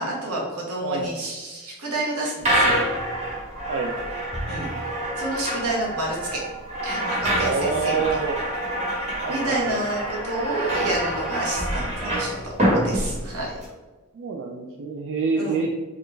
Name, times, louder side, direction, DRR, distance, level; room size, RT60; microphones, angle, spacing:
voice 1, 0.0-2.8 4.5-4.7 5.2-6.4 6.8-8.2 9.2-13.6 15.3-15.7, right 2 dB, 80° right, -3 dB, 1.1 m, -29 dB
sound 1, 2.4-13.6, right 1 dB, 30° right, 1.3 m, -26 dB
voice 2, 7.4-8.4 9.2-9.8 14.1-15.7, right 4 dB, 55° right, 1 dB, 0.3 m, -26 dB
3.7 x 2.4 x 3.3 m, 1.2 s
head